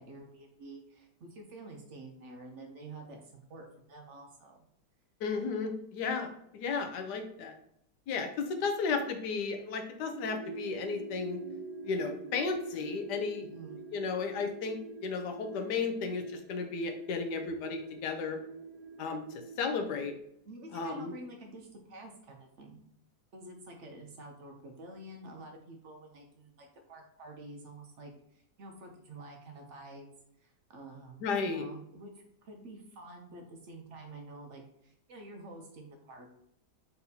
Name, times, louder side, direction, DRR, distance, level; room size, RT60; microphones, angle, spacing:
voice 1, 0.0-4.6 13.4-13.8 20.5-22.8 23.3-30.1 30.4-36.3, right 2 dB, 55° right, 2 dB, 0.8 m, -49 dB
voice 2, 5.2-7.6 8.1-11.4 11.8-13.5 13.9-18.4 19.0-20.1 20.7-21.1 31.2-31.7, left 5 dB, 80° left, 5 dB, 1.3 m, -34 dB
sound 1, 10.1-19.6, right 4 dB, 80° right, 1.3 m, -45 dB
4.1 x 3.9 x 2.8 m, 0.74 s
omnidirectional pair, 1.8 m